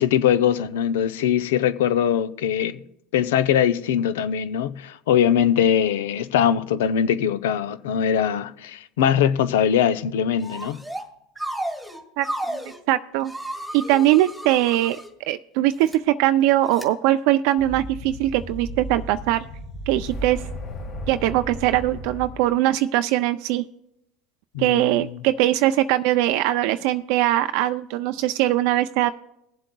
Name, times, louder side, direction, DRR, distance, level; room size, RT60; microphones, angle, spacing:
voice 1, 0.0-2.8 3.1-10.8 24.5-25.2, left 9 dB, 85° left, 0.5 m, -21 dB
sound 1, 10.4-11.1 11.4-12.8 13.3-15.1 15.7-16.0 16.7-16.9, right 1 dB, ahead, 1.6 m, -33 dB
voice 2, 12.2-12.6 12.9-13.3 13.7-15.0 15.3-19.4 19.9-20.4 21.1-23.6 24.6-29.1, right 14 dB, 70° right, 0.3 m, -21 dB
sound 2, 17.6-22.6, equal, 60° left, 2.6 m, -35 dB
22.0 x 7.7 x 2.3 m
supercardioid pair, 110°, 0 cm